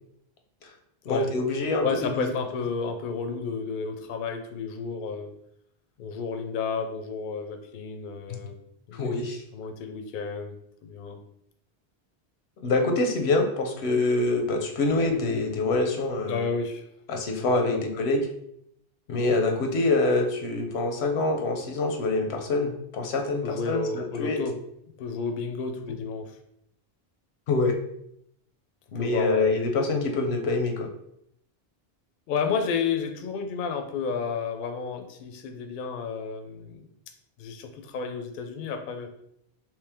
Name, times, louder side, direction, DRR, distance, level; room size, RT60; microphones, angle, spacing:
voice 1, 1.1-2.3 8.9-9.4 12.6-16.5 17.1-18.3 19.1-24.4 27.5-27.8 28.9-30.9, left 2 dB, 90° left, 4 dB, 0.9 m, -25 dB
voice 2, 1.8-5.3 6.0-8.5 8.9-9.2 9.5-11.2 16.3-16.8 17.4-17.8 23.4-24.6 25.0-26.3 29.0-29.6 32.3-36.8 37.4-39.1, left 5 dB, 60° left, 6 dB, 0.6 m, -31 dB
3.2 x 3.0 x 3.4 m, 0.73 s
omnidirectional pair, 1.0 m